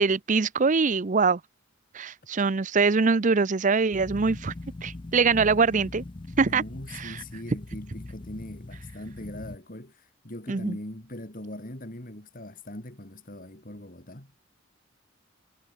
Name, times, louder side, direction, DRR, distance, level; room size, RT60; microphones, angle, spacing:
voice 1, 0.0-1.4 1.9-4.5 4.8-6.0 6.4-6.6 6.9-7.2 10.5-10.8, right 4 dB, 40° right, 0.6 m, -23 dB
sound 1, 3.9-9.6, left 2 dB, 25° left, 0.4 m, -41 dB
voice 2, 6.4-14.3, left 1 dB, 40° left, 3.6 m, -41 dB
head